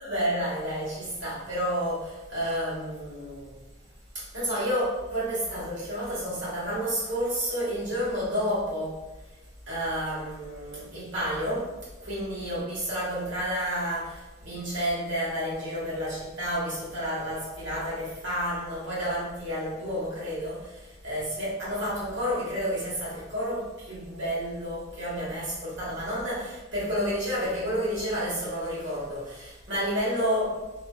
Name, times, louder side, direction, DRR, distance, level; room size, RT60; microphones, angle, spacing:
voice 1, 0.0-3.6 4.1-9.0 9.7-11.7 12.0-30.7, equal, 65° right, -8 dB, 1.2 m, -30 dB
2.5 x 2.1 x 2.2 m, 1.1 s
head